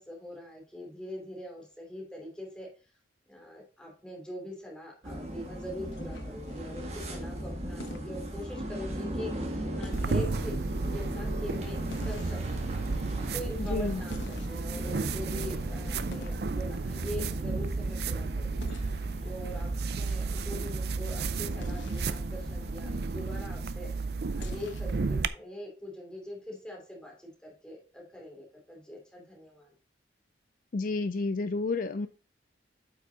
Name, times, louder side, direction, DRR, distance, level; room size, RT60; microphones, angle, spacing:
voice 1, 0.0-2.7 3.3-10.5 10.9-12.4 13.3-18.7 19.2-19.7 20.0-23.9 24.3-29.7, left 1 dB, 5° left, -2 dB, 2.9 m, -43 dB
sound 1, 5.0-23.4, equal, 35° right, 1.7 m, -38 dB
sound 2, 5.9-6.6 7.8-8.1 9.8-10.2 11.9-12.6 14.1-14.8 16.1-16.5 18.6-18.9 21.6-22.1 24.4-25.0, left 2 dB, 80° left, 1.1 m, -44 dB
sound 3, 9.9-25.3, right 4 dB, 60° right, 0.5 m, -33 dB
voice 2, 13.6-14.0 30.7-32.1, left 3 dB, 50° left, 10 dB, 0.4 m, -30 dB
8.4 x 5.8 x 4.0 m, 0.35 s
head